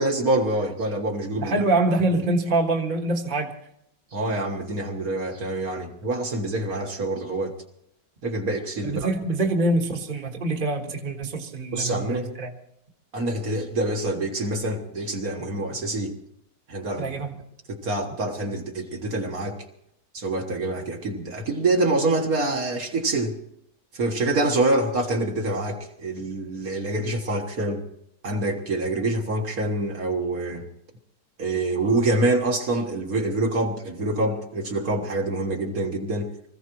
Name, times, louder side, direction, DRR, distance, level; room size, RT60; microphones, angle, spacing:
voice 1, 0.0-1.5 2.1-2.2 4.1-7.5 8.2-9.1 11.7-12.3 13.1-16.1 16.7-17.1 17.7-19.6 20.1-23.4 23.9-27.8 28.2-30.7 31.4-36.3, right 2 dB, 55° right, 1.9 m, -26 dB
voice 2, 1.4-3.5 8.8-12.5 17.0-17.3, right 2 dB, 30° right, 1.5 m, -25 dB
25.0 x 15.5 x 3.1 m
omnidirectional pair, 1.9 m